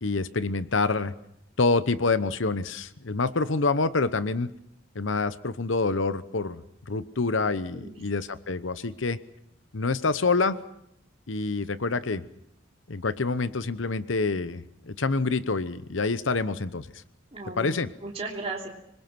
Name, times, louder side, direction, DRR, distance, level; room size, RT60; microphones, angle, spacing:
voice 1, 0.0-1.1 1.6-4.5 4.9-6.6 6.9-9.2 9.7-10.6 11.3-12.2 12.9-16.9 17.6-17.9, left 3 dB, 75° left, 14 dB, 0.9 m, -27 dB
voice 2, 17.3-18.7, right 3 dB, 30° right, -2 dB, 3.0 m, -36 dB
25.5 x 21.5 x 6.0 m, 0.77 s
head